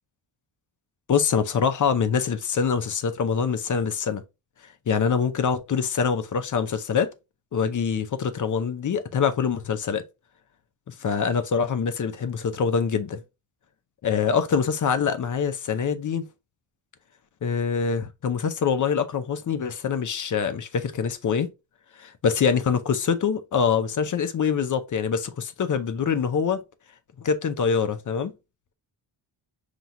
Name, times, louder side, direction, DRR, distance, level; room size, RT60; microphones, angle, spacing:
voice 1, 1.1-4.2 4.9-7.1 7.5-10.0 10.9-13.2 14.0-16.3 17.4-21.5 22.0-26.6 27.2-28.3, left 6 dB, 40° left, 0.6 m, -24 dB
5.6 x 3.0 x 2.5 m
cardioid pair, 130°, 48 cm